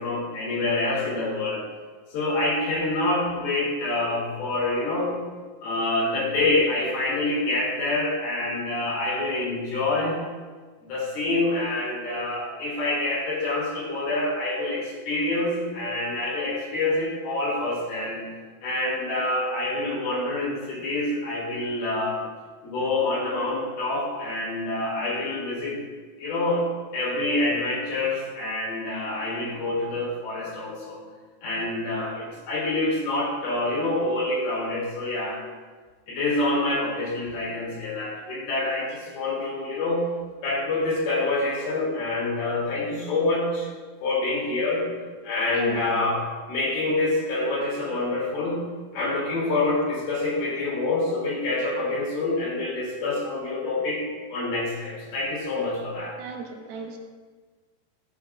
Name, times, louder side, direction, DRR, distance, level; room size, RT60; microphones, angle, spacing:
voice 1, 0.0-1.6 2.1-5.2 5.6-10.2 10.8-18.2 18.6-22.2 22.6-25.8 26.2-26.7 26.9-31.0 31.4-35.4 36.1-40.0 40.4-43.7 44.0-44.9 45.2-48.6 48.9-54.0 54.3-56.1, left 2 dB, 75° left, -5 dB, 4.7 m, -26 dB
voice 2, 45.5-46.1 56.2-57.0, right 5 dB, 80° right, 2 dB, 2.8 m, -36 dB
12.5 x 8.5 x 2.4 m, 1.4 s
omnidirectional pair, 4.4 m